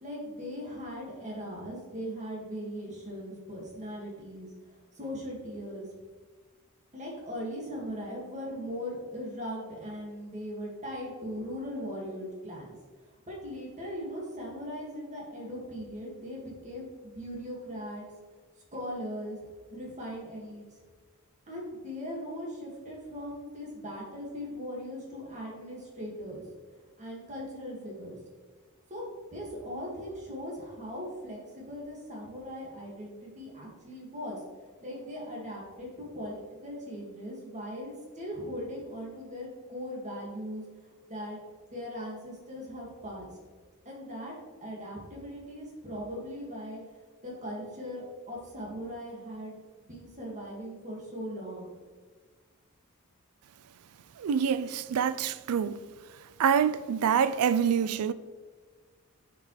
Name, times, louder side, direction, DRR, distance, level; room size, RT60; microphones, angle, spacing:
voice 1, 0.0-4.5 4.9-5.9 6.9-12.8 13.3-18.1 18.7-19.4 19.7-20.7 21.5-26.4 27.0-28.2 28.9-29.0 29.3-34.4 34.8-41.4 41.7-43.3 43.9-44.3 44.6-46.8 47.2-51.7, equal, 35° right, 2.0 m, -39 dB
voice 2, 54.2-55.8 56.4-58.1, right 7 dB, 75° right, 0.4 m, -26 dB
9.8 x 5.1 x 3.2 m
head